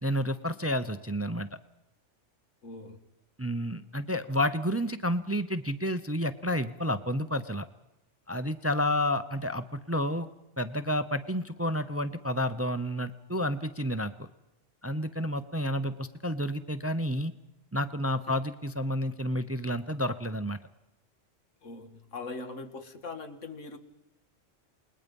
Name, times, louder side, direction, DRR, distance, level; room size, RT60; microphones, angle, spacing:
voice 1, 0.0-1.5 3.4-7.7 8.3-10.3 10.6-14.3 14.8-17.3 17.7-20.6, equal, 15° right, 12 dB, 0.5 m, -30 dB
voice 2, 2.6-3.0 18.3-18.4 21.6-23.8, left 3 dB, 90° left, 8 dB, 2.0 m, -41 dB
28.5 x 20.5 x 5.3 m, 0.97 s
omnidirectional pair, 1.3 m